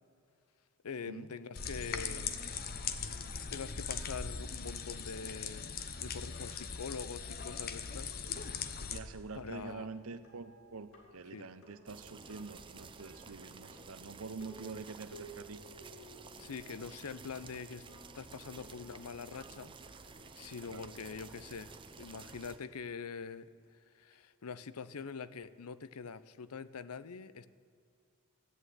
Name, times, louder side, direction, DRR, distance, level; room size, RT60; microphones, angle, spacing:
voice 1, 0.8-2.4 3.5-8.2 8.6-8.8 9.3-9.9 11.3-11.5 16.4-17.8 18.2-20.1 20.3-27.5, left 5 dB, 85° left, 16 dB, 0.6 m, -44 dB
sound 1, 1.6-9.0, left 6 dB, 40° left, 0.8 m, -40 dB
sound 2, 6.6-22.0, right 1 dB, 65° left, 3.1 m, -58 dB
voice 2, 8.9-15.6 20.7-20.9, right 4 dB, 70° right, 12 dB, 0.9 m, -46 dB
sound 3, 11.9-22.6, right 4 dB, 20° right, 0.6 m, -52 dB
14.0 x 8.8 x 9.3 m, 2.4 s
head